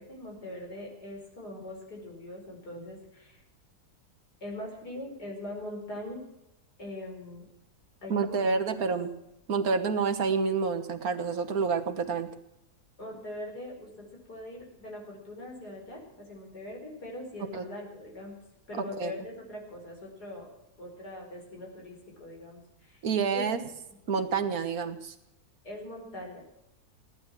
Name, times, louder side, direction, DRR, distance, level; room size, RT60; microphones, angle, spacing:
voice 1, 0.0-3.4 4.4-6.3 6.8-7.5 8.0-8.9 13.0-18.4 18.7-20.5 20.8-23.0 23.3-23.6 25.6-26.4, left 1 dB, 85° left, 0 dB, 5.3 m, -41 dB
voice 2, 8.1-9.1 9.5-12.3 17.5-17.7 18.7-19.1 23.0-23.6 24.1-25.2, right 5 dB, 65° right, 7 dB, 1.7 m, -28 dB
17.0 x 11.0 x 7.4 m, 0.86 s
omnidirectional pair, 1.7 m